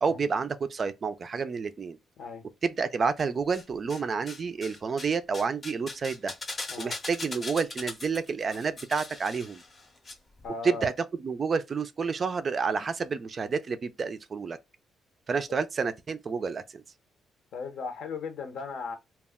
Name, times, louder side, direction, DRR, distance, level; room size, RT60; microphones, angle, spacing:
voice 1, 0.0-2.0 2.6-6.3 6.8-9.6 10.6-10.9 11.2-14.6 15.3-16.8, right 5 dB, 35° right, 0.3 m, -29 dB
sound 1, 3.2-4.0 4.3-10.1 10.4-10.5, left 2 dB, 30° left, 0.6 m, -40 dB
voice 2, 10.4-10.9 17.5-19.0, left 5 dB, 65° left, 0.8 m, -37 dB
2.2 x 2.1 x 3.5 m
cardioid pair, 125°, 0 cm